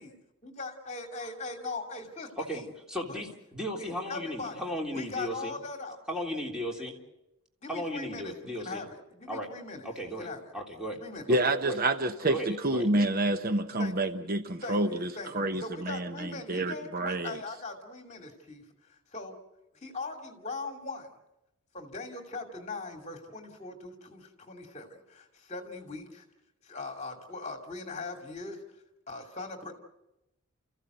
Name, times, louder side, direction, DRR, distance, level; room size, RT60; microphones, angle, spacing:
voice 1, 0.4-2.7 3.1-3.3 3.8-6.0 7.6-10.4 11.0-11.3 13.8-14.1 14.6-19.4 19.7-21.1 21.7-26.2 26.6-28.6 29.1-29.7, left 3 dB, 30° left, 4 dB, 2.6 m, -40 dB
voice 2, 2.9-5.5 6.1-6.9 7.7-8.8 9.3-9.5 9.8-10.3 10.5-11.0 11.3-11.8 12.2-12.9, equal, 5° right, -1 dB, 3.4 m, -35 dB
voice 3, 11.3-17.4, right 1 dB, 40° right, 8 dB, 0.9 m, -28 dB
29.5 x 15.0 x 8.0 m, 0.94 s
head